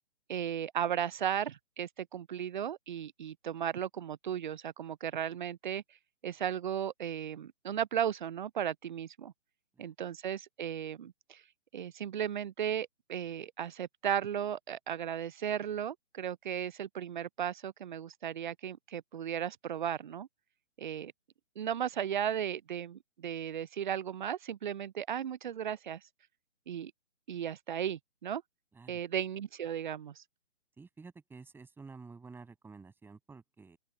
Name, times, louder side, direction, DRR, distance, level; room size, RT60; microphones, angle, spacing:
voice 1, 0.3-5.8 6.2-9.3 9.8-11.4 11.7-20.3 20.8-21.1 21.6-26.0 26.7-26.9 27.3-28.4 28.9-30.2, right 9 dB, 40° right, 0.5 m, -35 dB
voice 2, 30.8-33.8, right 4 dB, 5° right, 6.2 m, -51 dB
open air
figure-of-eight pair, 140°, 36 cm